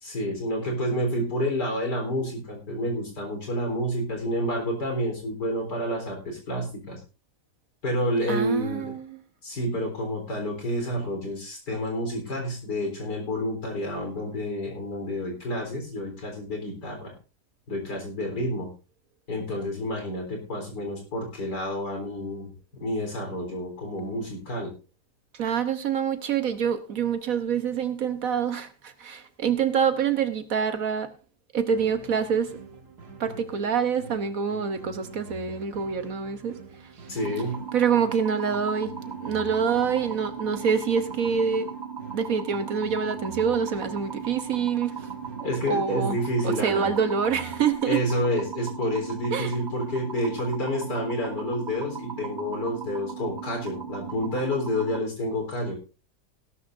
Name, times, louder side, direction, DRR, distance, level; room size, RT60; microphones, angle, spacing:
voice 1, 0.0-7.0 7.8-8.9 9.4-17.1 17.7-18.7 19.3-24.7 37.1-37.6 45.4-46.8 47.8-55.7, equal, 80° left, 4.6 m, -29 dB
voice 2, 8.3-9.2 25.3-31.1 31.5-32.5 33.2-37.1 37.7-38.9 39.2-41.7 42.1-45.1 45.4-46.2 46.4-48.1 49.3-49.5, right 6 dB, 60° right, 1.3 m, -26 dB
sound 1, 31.7-47.7, right 4 dB, 75° right, 2.4 m, -45 dB
sound 2, 37.2-55.0, right 6 dB, 25° right, 1.6 m, -37 dB
16.5 x 12.5 x 2.6 m
omnidirectional pair, 1.8 m